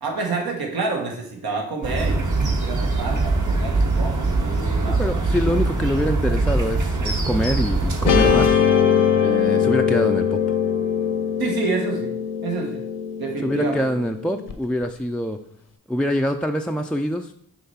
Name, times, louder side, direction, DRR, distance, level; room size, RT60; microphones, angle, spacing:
voice 1, 0.0-5.0 11.4-12.1 12.4-12.8 13.2-13.9, right 4 dB, 80° right, 1 dB, 1.2 m, -28 dB
sound 1, 1.8-8.5, right 3 dB, 55° right, 1.2 m, -22 dB
voice 2, 5.0-8.6 9.2-10.4 13.4-15.4 15.9-17.3, equal, 5° left, 4 dB, 0.3 m, -24 dB
Guitar, 8.1-14.5, left 8 dB, 60° left, 0.8 m, -21 dB
5.7 x 3.2 x 5.6 m, 0.69 s
cardioid pair, 55°, 36 cm